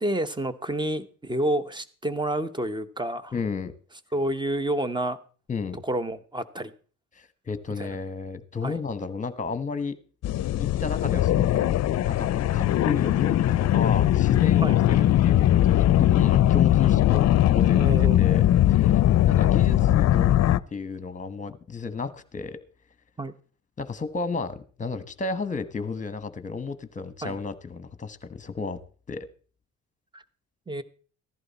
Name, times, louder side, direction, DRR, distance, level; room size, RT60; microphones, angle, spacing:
voice 1, 0.0-3.3 4.1-5.2 5.8-6.7 7.8-8.0 8.6-8.8 14.6-14.8 17.8-18.2 23.2-23.3 27.2-27.4 30.1-30.2 30.7-30.8, right 1 dB, 15° right, 1.0 m, -29 dB
voice 2, 3.3-3.7 5.5-5.8 7.2-9.9 10.6-11.7 12.0-22.6 23.8-28.8 29.1-29.3, left 4 dB, 25° left, 1.4 m, -33 dB
sound 1, 10.2-20.6, left 13 dB, 60° left, 0.5 m, -20 dB
14.5 x 11.0 x 4.2 m
cardioid pair, 90°, 30 cm